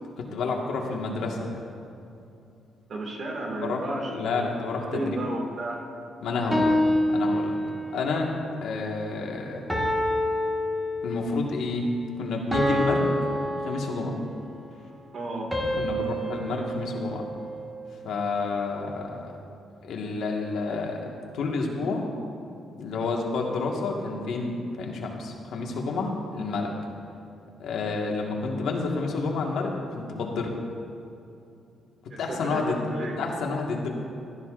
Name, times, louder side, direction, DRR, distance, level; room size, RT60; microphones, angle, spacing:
voice 1, 0.2-1.6 3.6-5.2 6.2-6.7 7.1-7.6 7.9-8.3 8.6-9.6 11.0-13.1 13.6-14.2 15.8-17.3 18.0-19.3 19.8-21.1 21.3-22.0 22.7-26.7 27.6-30.5 32.2-32.8 33.2-33.9, left 3 dB, 75° left, 0 dB, 1.6 m, -29 dB
voice 2, 2.9-4.6 4.9-5.8 15.1-15.5 32.1-33.2, right 2 dB, 50° right, 0 dB, 2.0 m, -33 dB
sound 1, 6.5-8.1 9.7-11.3 12.5-14.4 15.5-17.8, left 1 dB, 5° right, 1.6 m, -27 dB
15.5 x 13.0 x 2.5 m, 2.7 s
cardioid pair, 130°, 0 cm